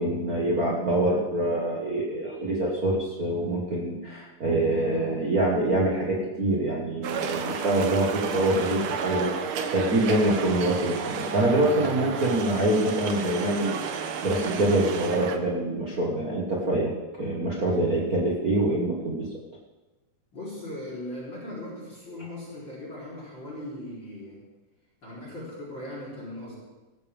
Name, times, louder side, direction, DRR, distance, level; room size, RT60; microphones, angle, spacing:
voice 1, 0.0-13.8 14.2-19.3, right 1 dB, 40° right, -3 dB, 1.3 m, -25 dB
sound 1, 7.0-15.4, right 6 dB, 70° right, 1.3 m, -32 dB
voice 2, 20.3-24.4 25.0-26.6, left 1 dB, 35° left, -6 dB, 4.4 m, -38 dB
18.0 x 14.5 x 3.6 m, 1.2 s
omnidirectional pair, 3.6 m